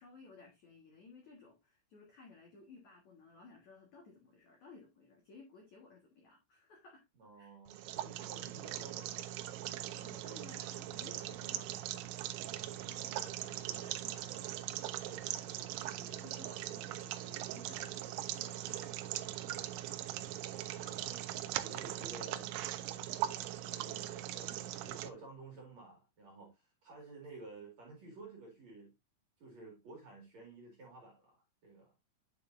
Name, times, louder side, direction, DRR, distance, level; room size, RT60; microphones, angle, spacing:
voice 1, 0.0-7.0 7.3-7.6 9.9-12.3 12.8-19.6, left 4 dB, 75° left, 1.7 m, -58 dB
voice 2, 7.2-9.2 13.3-13.4 20.9-21.3 21.6-22.5 23.4-28.9 29.4-31.9, right 3 dB, 50° right, 2.3 m, -53 dB
sound 1, 7.7-25.1, right 13 dB, 85° right, 2.6 m, -40 dB
10.0 x 5.2 x 2.6 m
omnidirectional pair, 5.8 m